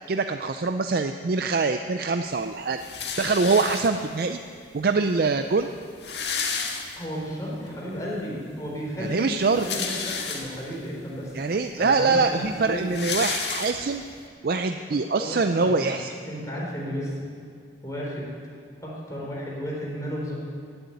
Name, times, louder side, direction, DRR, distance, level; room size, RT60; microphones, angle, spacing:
voice 1, 0.1-2.8 3.2-4.4 4.7-5.7 9.0-9.7 11.3-14.0 14.4-16.1, right 4 dB, 55° right, 7 dB, 0.5 m, -24 dB
sound 1, 2.8-4.2 5.1-5.2 5.4-5.5 5.7-7.3 7.8-7.9 9.3-10.8 11.4-11.5 11.8-14.1, left 5 dB, 70° left, 1.7 m, -31 dB
voice 2, 6.9-11.3 11.8-12.8 15.2-15.9 16.3-17.2 17.8-18.3 18.8-20.3, equal, 20° left, -4 dB, 4.0 m, -33 dB
16.0 x 8.1 x 9.5 m, 2.1 s
head